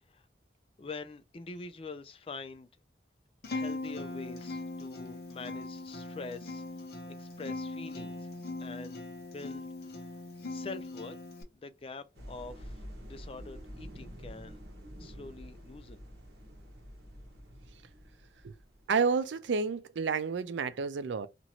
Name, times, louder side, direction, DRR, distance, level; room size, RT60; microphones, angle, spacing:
voice 1, 0.8-2.7 3.5-6.6 7.1-8.3 8.6-9.1 9.3-9.7 10.0-10.1 10.5-11.2 11.5-14.6 15.0-16.0, left 3 dB, 30° left, 0.3 m, -45 dB
Acoustic guitar, 3.4-11.4, left 2 dB, 60° left, 0.7 m, -40 dB
sound 1, 12.1-19.0, equal, 65° right, 1.1 m, -48 dB
voice 2, 18.9-21.3, right 5 dB, 85° right, 0.4 m, -30 dB
2.9 x 2.5 x 2.8 m
head